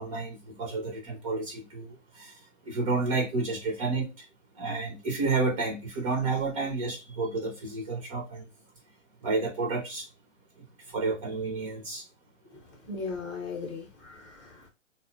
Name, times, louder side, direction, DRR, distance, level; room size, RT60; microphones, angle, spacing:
voice 1, 0.0-2.4 2.7-4.3 4.6-8.5 9.2-10.1 10.9-12.0, right 3 dB, 25° right, 0.5 m, -30 dB
voice 2, 12.5-14.7, left 4 dB, 25° left, 0.6 m, -38 dB
3.7 x 2.1 x 2.4 m
figure-of-eight pair, 125°, 38 cm